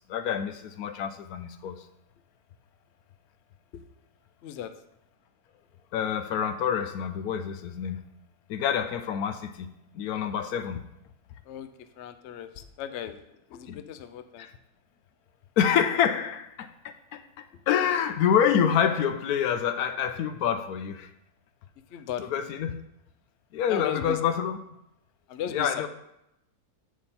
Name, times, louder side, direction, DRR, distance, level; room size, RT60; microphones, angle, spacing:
voice 1, 0.1-1.8 5.9-8.0 8.5-9.7 9.9-10.8 13.7-13.8 14.4-14.5 15.6-21.1 22.3-22.7 23.5-24.6 25.5-25.9, left 8 dB, 90° left, 10 dB, 1.1 m, -27 dB
voice 2, 12.0-14.5 17.5-17.6 21.9-22.6 23.6-24.2 25.3-25.9, left 10 dB, 65° left, 10 dB, 0.7 m, -37 dB
7.3 x 5.1 x 4.2 m, 0.83 s
omnidirectional pair, 1.6 m